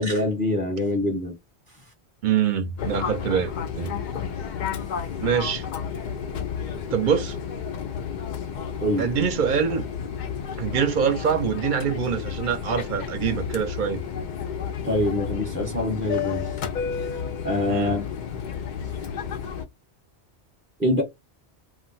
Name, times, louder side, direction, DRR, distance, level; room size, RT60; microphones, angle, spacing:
voice 1, 0.0-1.4 8.8-9.1 14.8-16.5 16.9-18.1 20.8-21.0, left 1 dB, 10° right, 0.8 m, -25 dB
voice 2, 2.2-3.9 5.2-5.7 6.9-7.4 9.0-9.8 10.6-14.0 17.7-17.9, right 7 dB, 55° right, 0.7 m, -24 dB
Fixed-wing aircraft airplane, 2.8-19.7, left 7 dB, 60° left, 0.5 m, -31 dB
2.4 x 2.2 x 3.9 m
omnidirectional pair, 1.2 m